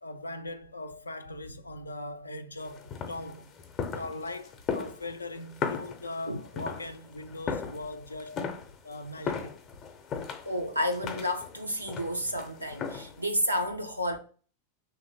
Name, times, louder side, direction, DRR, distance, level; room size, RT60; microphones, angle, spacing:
voice 1, 0.0-3.5 3.9-8.5 8.8-9.7 10.1-10.2, left 2 dB, 80° left, 0.3 m, -40 dB
sound 1, 2.6-13.3, left 6 dB, 30° left, 0.6 m, -38 dB
voice 2, 10.5-14.2, equal, 90° right, 0.4 m, -31 dB
3.1 x 2.5 x 4.0 m
figure-of-eight pair, 90°, 0 cm